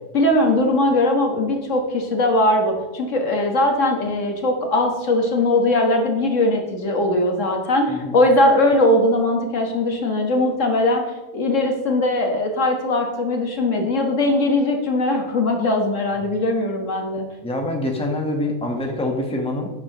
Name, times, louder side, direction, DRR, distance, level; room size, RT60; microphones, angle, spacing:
voice 1, 0.1-11.0 11.3-17.2, left 1 dB, 60° left, 2 dB, 1.8 m, -20 dB
voice 2, 17.4-19.7, left 1 dB, 5° left, 1 dB, 1.1 m, -25 dB
11.5 x 8.7 x 3.0 m, 1.1 s
omnidirectional pair, 1.5 m